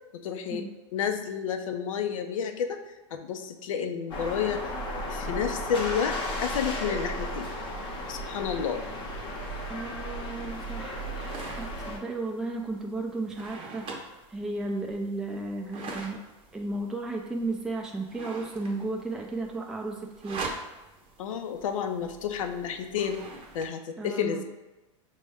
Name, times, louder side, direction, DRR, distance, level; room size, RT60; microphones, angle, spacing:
voice 1, 0.2-0.6 0.9-2.8 3.1-4.7 5.1-6.1 6.4-7.5 8.1-8.8 21.2-23.2 23.5-24.4, left 7 dB, 85° left, 6 dB, 0.5 m, -30 dB
sound 1, 4.1-12.0, equal, 30° left, 0.8 m, -34 dB
voice 2, 9.7-16.2 16.5-20.5 24.0-24.4, right 2 dB, 5° right, 0 dB, 0.4 m, -34 dB
sound 2, 10.5-23.7, right 3 dB, 35° right, 0.7 m, -44 dB
5.2 x 2.1 x 3.4 m, 1.1 s
hypercardioid pair, 120°, 17 cm